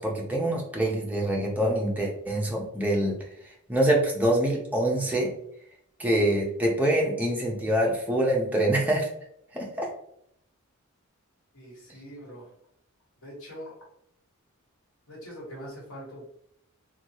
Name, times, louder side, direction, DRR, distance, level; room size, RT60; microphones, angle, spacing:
voice 1, 0.0-3.1 3.7-5.3 6.0-9.1 9.5-9.9, right 1 dB, 5° right, -2 dB, 0.6 m, -25 dB
voice 2, 11.5-12.5 13.2-13.8 15.1-16.3, equal, 70° left, -4 dB, 1.3 m, -42 dB
2.8 x 2.3 x 2.8 m, 0.71 s
head